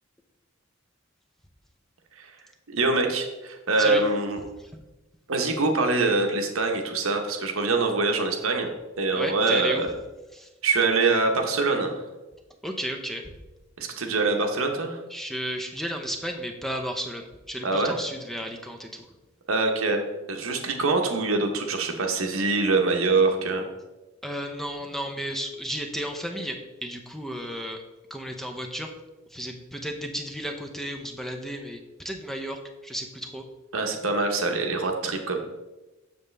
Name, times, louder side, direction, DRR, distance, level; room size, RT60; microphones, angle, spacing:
voice 1, 2.7-4.4 5.3-8.7 9.0-9.9 10.6-11.9 13.8-15.0 17.6-17.9 19.5-20.0 20.3-23.7 33.7-35.4, right 3 dB, 85° right, 4 dB, 1.0 m, -24 dB
voice 2, 9.1-9.8 10.3-10.5 12.6-13.2 15.1-19.1 24.2-27.8 28.1-28.9 29.3-33.4, equal, ahead, 3 dB, 0.5 m, -33 dB
7.1 x 6.6 x 3.3 m, 1.1 s
head